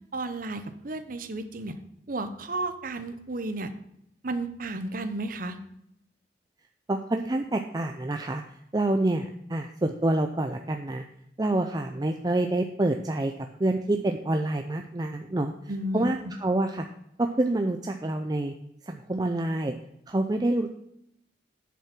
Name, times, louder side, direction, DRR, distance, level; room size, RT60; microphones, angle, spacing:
voice 1, 0.1-1.8 2.1-3.7 4.2-5.6 15.7-16.1, right 2 dB, 50° right, 9 dB, 0.9 m, -33 dB
voice 2, 6.9-8.4 8.7-11.0 11.4-13.3 13.6-15.5 15.9-16.2 16.4-16.8 17.2-18.5 18.9-19.7 20.1-20.7, right 2 dB, 20° right, 5 dB, 0.5 m, -27 dB
8.6 x 6.9 x 6.0 m, 0.77 s
head